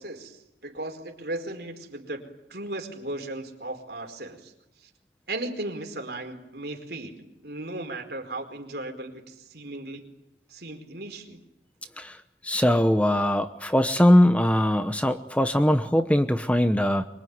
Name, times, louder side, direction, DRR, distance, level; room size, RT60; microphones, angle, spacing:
voice 1, 0.0-4.5 4.8-4.9 5.3-10.1 10.5-11.4, right 2 dB, 60° right, 5 dB, 4.7 m, -36 dB
voice 2, 12.4-17.1, left 1 dB, 5° left, 9 dB, 1.0 m, -21 dB
25.0 x 24.0 x 9.7 m, 0.85 s
head